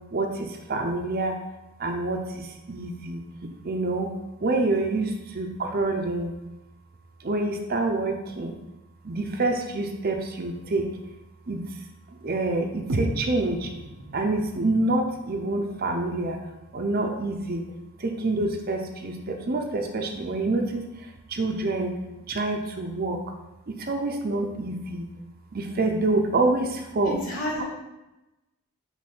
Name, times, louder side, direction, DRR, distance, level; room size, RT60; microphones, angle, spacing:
voice 1, 0.1-1.4 1.8-4.1 4.4-6.3 7.2-8.6 9.0-10.9 11.5-11.8 12.2-13.7 14.1-16.4 16.7-17.6 18.0-22.0 22.3-23.2 23.7-25.1 25.5-27.2 27.6-27.7, right 2 dB, 40° right, 3 dB, 0.5 m, -27 dB
sound 1, 12.9-16.9, right 1 dB, 80° right, 0.7 m, -35 dB
voice 2, 27.1-27.6, left 1 dB, 40° left, -4 dB, 2.0 m, -30 dB
6.6 x 3.3 x 5.4 m, 0.98 s
head